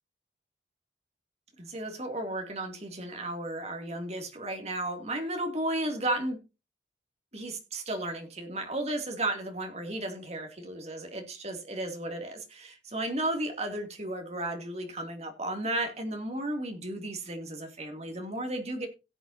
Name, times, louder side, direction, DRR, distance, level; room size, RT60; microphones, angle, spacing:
voice 1, 1.6-6.4 7.3-18.9, right 1 dB, 35° right, 4 dB, 2.7 m, -34 dB
17.0 x 8.1 x 2.8 m, 0.28 s
head